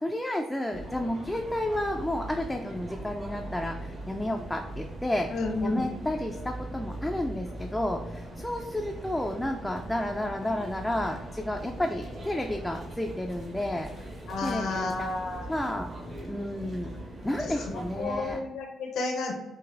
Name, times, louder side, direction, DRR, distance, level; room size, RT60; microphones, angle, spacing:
voice 1, 0.0-5.3 5.6-13.9 14.4-15.1 15.5-15.9 16.3-17.0 17.2-18.4, left 1 dB, 10° left, 2 dB, 0.3 m, -31 dB
sound 1, 0.7-18.4, right 1 dB, 45° right, 1.2 m, -40 dB
voice 2, 5.3-5.9 14.3-15.5 17.4-19.3, left 3 dB, 75° left, 1 dB, 0.6 m, -32 dB
4.7 x 2.6 x 2.5 m, 1.1 s
cardioid pair, 90°, 0 cm